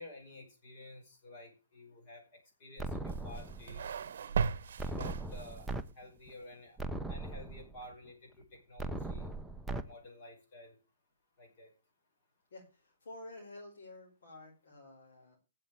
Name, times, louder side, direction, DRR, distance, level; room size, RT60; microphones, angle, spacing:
voice 1, 0.0-4.0 5.0-5.7 6.0-6.8 7.1-9.3 9.7-10.8 11.4-11.7, left 1 dB, 35° left, 2 dB, 5.5 m, -51 dB
sound 1, 2.8-3.8 4.8-5.8 6.3-6.4 6.8-7.8 8.8-9.8, right 2 dB, ahead, 0.5 m, -39 dB
sound 2, 3.1-5.8, right 6 dB, 60° right, 0.9 m, -36 dB
voice 2, 12.5-15.4, left 2 dB, 70° left, -1 dB, 5.2 m, -51 dB
8.9 x 7.5 x 8.6 m, 0.32 s
hypercardioid pair, 165°, 0 cm